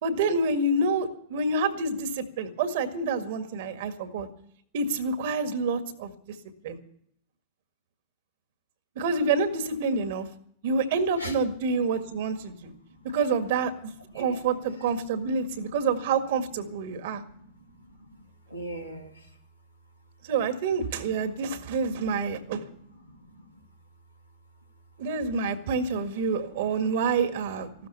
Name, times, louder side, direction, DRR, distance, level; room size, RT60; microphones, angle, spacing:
voice 1, 0.0-4.3 4.7-6.1 6.6-6.8 9.0-10.3 10.6-12.7 13.1-17.2 20.3-22.6 25.0-27.9, right 4 dB, 55° right, 9 dB, 1.8 m, -27 dB
voice 2, 12.5-13.1 14.0-14.5 15.0-15.5 16.8-19.3 21.1-23.6 25.9-27.1 27.8-27.9, right 1 dB, 90° left, 1 dB, 2.5 m, -45 dB
15.0 x 13.0 x 6.9 m, 0.66 s
figure-of-eight pair, 90°, 0 cm